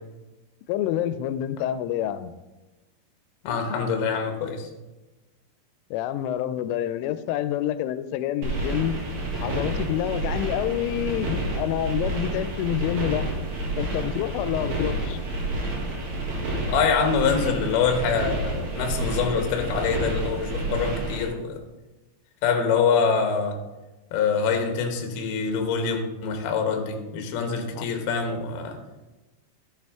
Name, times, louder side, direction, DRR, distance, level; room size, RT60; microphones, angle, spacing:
voice 1, 0.7-2.3 5.9-9.0 9.4-13.3 13.8-15.2 27.8-27.9, left 11 dB, 90° left, 12 dB, 3.1 m, -27 dB
voice 2, 3.4-4.7 16.7-21.6 22.4-23.6 24.1-28.8, left 5 dB, 70° left, 4 dB, 2.6 m, -25 dB
sound 1, 8.4-21.2, right 1 dB, 60° right, 1.7 m, -29 dB
12.0 x 7.2 x 3.5 m, 1.1 s
omnidirectional pair, 5.5 m